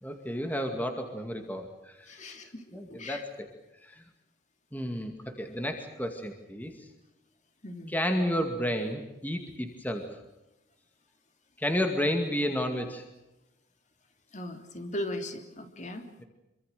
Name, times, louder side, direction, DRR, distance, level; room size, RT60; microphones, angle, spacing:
voice 1, 0.0-2.2 2.7-3.5 3.8-4.0 4.7-6.9 7.9-10.2 11.6-13.0, equal, 10° left, 4 dB, 2.3 m, -32 dB
voice 2, 2.1-3.2 7.6-7.9 14.3-16.0, left 1 dB, 40° left, 6 dB, 3.1 m, -38 dB
27.0 x 24.5 x 6.8 m, 0.96 s
head